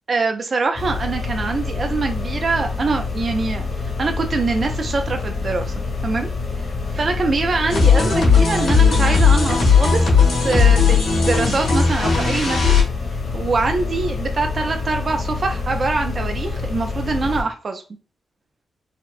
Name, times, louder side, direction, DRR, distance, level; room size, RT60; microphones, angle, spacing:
voice 1, 0.1-3.7 4.0-5.7 6.0-6.3 6.6-10.1 10.4-12.6 13.3-17.8, right 3 dB, 45° right, 4 dB, 0.4 m, -23 dB
sound 1, 0.7-17.4, left 4 dB, 55° left, 1.2 m, -27 dB
sound 2, 7.7-12.8, left 5 dB, 80° left, 1.7 m, -16 dB
4.2 x 2.0 x 2.4 m, 0.33 s
wide cardioid pair, 110°, 0 cm